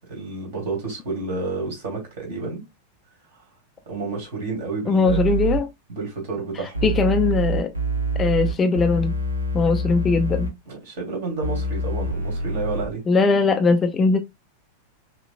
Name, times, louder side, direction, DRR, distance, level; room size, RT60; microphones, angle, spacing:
voice 1, 0.1-2.6 3.9-5.2 5.9-6.9 10.7-13.0, right 3 dB, 55° right, 2.3 m, -30 dB
voice 2, 4.9-5.7 6.8-7.7 8.2-9.1 9.5-10.5 13.1-14.2, left 4 dB, 20° left, 0.4 m, -20 dB
sound 1, 5.0-5.6 6.7-10.5 11.4-12.8, right 1 dB, 80° right, 0.8 m, -25 dB
5.5 x 2.2 x 2.4 m
figure-of-eight pair, 90°, 0 cm